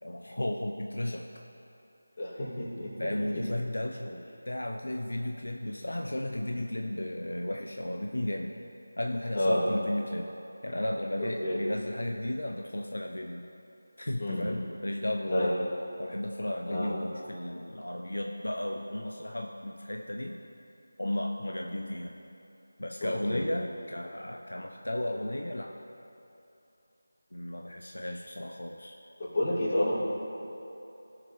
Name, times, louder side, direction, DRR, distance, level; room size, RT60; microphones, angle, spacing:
voice 1, 0.0-1.3 3.0-8.5 9.0-10.3 10.6-13.5 14.0-15.5 16.0-20.4 21.0-22.1 22.8-25.7 27.3-29.0, left 1 dB, 85° left, 2 dB, 0.6 m, -34 dB
voice 2, 2.2-3.2 9.3-9.6 11.2-11.6 14.2-14.5 15.3-15.5 16.7-16.9 23.0-23.4 29.2-30.0, left 1 dB, 40° left, -6 dB, 2.3 m, -29 dB
16.5 x 6.8 x 3.1 m, 2.8 s
figure-of-eight pair, 170°, 0 cm